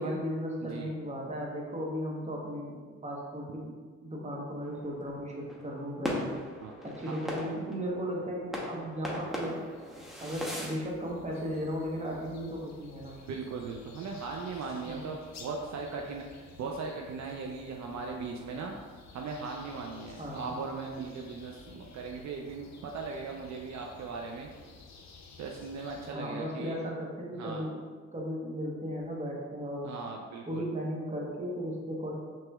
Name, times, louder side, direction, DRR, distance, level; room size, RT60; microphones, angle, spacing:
voice 1, 0.0-2.8 3.0-3.7 4.0-6.2 6.8-9.6 10.2-13.2 14.8-15.1 20.2-20.5 26.1-27.8 28.1-29.9 30.5-32.2, equal, 20° right, -2 dB, 1.1 m, -36 dB
voice 2, 0.6-0.9 6.6-6.7 7.1-7.2 13.3-18.7 19.1-24.5 25.4-26.8 27.3-27.6 29.8-30.7, right 4 dB, 65° right, 0 dB, 0.5 m, -38 dB
sound 1, 4.6-10.8, equal, ahead, 0.8 m, -39 dB
sound 2, 9.4-26.2, left 4 dB, 60° left, 0.7 m, -53 dB
5.9 x 3.0 x 2.3 m, 1.5 s
cardioid pair, 75°, 31 cm